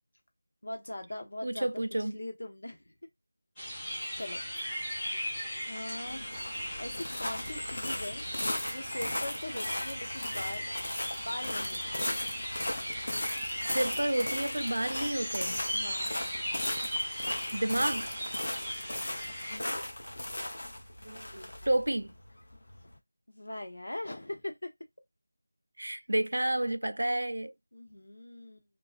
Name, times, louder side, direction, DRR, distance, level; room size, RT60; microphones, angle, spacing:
voice 1, 0.6-1.7 2.0-2.9 3.6-4.4 5.7-6.3 6.8-8.2 8.6-12.1 15.7-16.1 19.5-19.8 22.8-23.0 23.3-24.7 27.7-28.6, left 1 dB, 65° left, 0.9 m, -41 dB
voice 2, 1.4-2.2 13.6-15.6 17.5-18.1 21.0-22.1 25.8-27.5, right 1 dB, 75° right, 0.3 m, -30 dB
sound 1, 3.6-19.6, equal, 5° left, 0.4 m, -37 dB
sound 2, 6.0-23.0, left 1 dB, 45° left, 0.6 m, -37 dB
2.3 x 2.2 x 2.4 m
figure-of-eight pair, 180°, 0 cm